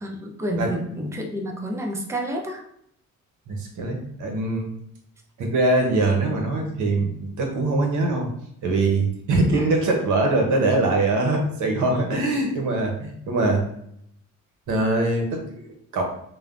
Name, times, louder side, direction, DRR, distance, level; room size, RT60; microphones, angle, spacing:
voice 1, 0.0-2.6 6.1-6.4 9.5-9.7, equal, 10° right, 1 dB, 0.5 m, -30 dB
voice 2, 3.5-4.7 5.4-8.3 8.6-13.6 14.7-16.0, right 2 dB, 80° right, 2 dB, 0.8 m, -23 dB
3.2 x 2.1 x 2.4 m, 0.72 s
cardioid pair, 90°, 30 cm